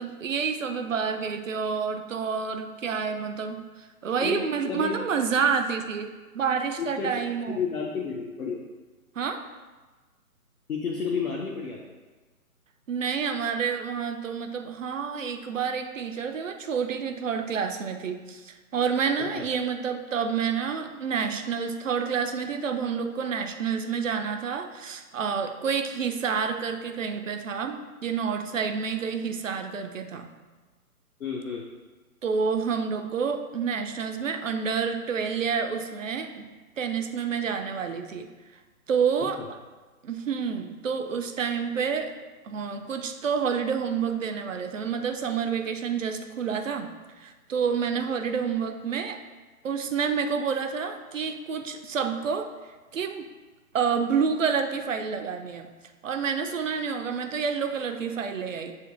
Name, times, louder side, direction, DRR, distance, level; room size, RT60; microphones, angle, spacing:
voice 1, 0.0-3.6 4.0-6.1 6.3-7.6 9.2-9.4 12.9-30.3 32.2-36.4 36.8-38.3 38.9-39.4 40.0-42.1 42.4-46.9 47.2-49.2 49.6-52.5 52.9-53.3 53.7-55.7 56.0-58.7, right 6 dB, 60° right, 6 dB, 0.5 m, -28 dB
voice 2, 4.2-5.0 6.8-7.2 7.5-8.6 10.7-11.8 19.2-19.4 31.2-31.6 39.2-39.5, left 5 dB, 65° left, -1 dB, 0.6 m, -31 dB
6.7 x 2.5 x 2.5 m, 1.3 s
figure-of-eight pair, 135°, 45 cm